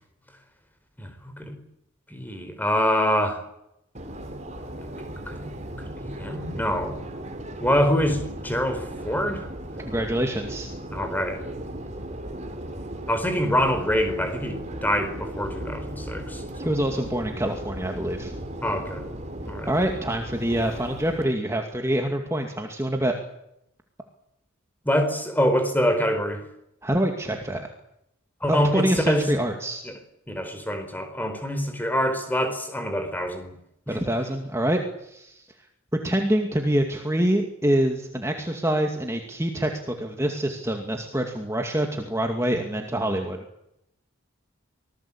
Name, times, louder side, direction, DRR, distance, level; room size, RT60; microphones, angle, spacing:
voice 1, 2.1-3.4 5.3-5.5 6.0-7.0 7.6-9.4 10.9-11.4 13.1-16.4 17.0-17.1 18.6-19.1 19.4-19.7 24.8-26.4 28.4-29.3 29.8-29.9 30.3-33.5 33.9-34.0, equal, 10° left, 7 dB, 4.6 m, -25 dB
Subway metro underground, 3.9-21.3, right 1 dB, 35° right, 3.5 m, -36 dB
voice 2, 9.9-10.7 16.6-18.3 19.6-23.1 26.8-27.7 28.5-29.8 33.9-35.4 36.0-43.4, right 1 dB, 15° right, 3 dB, 2.3 m, -26 dB
26.0 x 19.5 x 8.7 m, 0.80 s
head